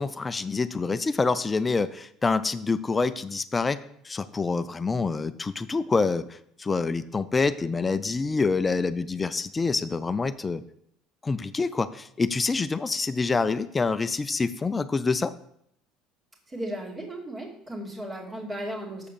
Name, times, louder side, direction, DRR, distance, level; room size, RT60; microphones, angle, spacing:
voice 1, 0.0-6.2 6.6-10.6 11.2-15.3, left 4 dB, 25° left, 12 dB, 0.5 m, -26 dB
voice 2, 16.5-19.1, right 1 dB, 25° right, 0 dB, 2.4 m, -35 dB
7.0 x 5.0 x 6.8 m, 0.72 s
supercardioid pair, 85°, 0 cm